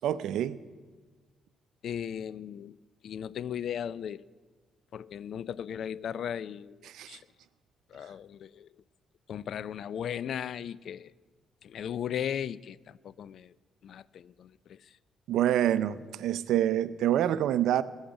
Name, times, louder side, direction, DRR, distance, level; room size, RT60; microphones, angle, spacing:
voice 1, 0.0-0.6 6.9-7.2 15.3-17.8, right 11 dB, 80° right, 0.5 m, -26 dB
voice 2, 1.8-2.8 3.0-4.2 4.9-7.2 7.9-8.7 9.3-11.1 11.6-13.5 13.8-14.9, left 9 dB, 65° left, 0.3 m, -37 dB
15.5 x 7.3 x 8.8 m
cardioid pair, 90°, 0 cm